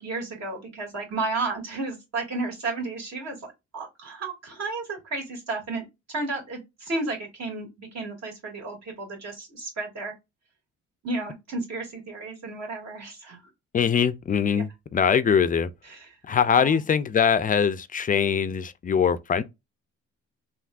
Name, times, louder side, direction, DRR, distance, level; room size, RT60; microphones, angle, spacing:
voice 1, 0.0-10.1 11.0-13.4 15.9-16.1 16.5-16.8, right 3 dB, 60° right, 2.1 m, -33 dB
voice 2, 13.7-15.7 16.3-19.4, left 7 dB, 30° left, 0.4 m, -22 dB
3.4 x 2.6 x 2.4 m
cardioid pair, 90°, 30 cm